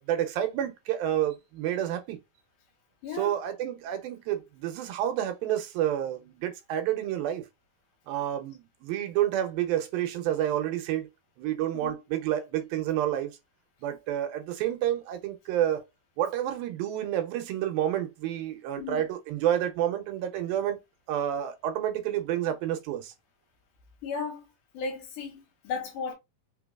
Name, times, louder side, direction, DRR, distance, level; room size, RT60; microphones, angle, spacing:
voice 1, 0.0-2.2 3.2-7.4 8.1-11.1 11.4-13.3 13.8-15.8 16.2-20.8 21.1-23.1, right 11 dB, 90° right, 2.5 m, -29 dB
voice 2, 3.0-3.3 11.7-11.9 18.8-19.0 24.0-24.5 24.7-26.1, left 5 dB, 70° left, 2.4 m, -35 dB
5.4 x 2.3 x 2.3 m
omnidirectional pair, 4.0 m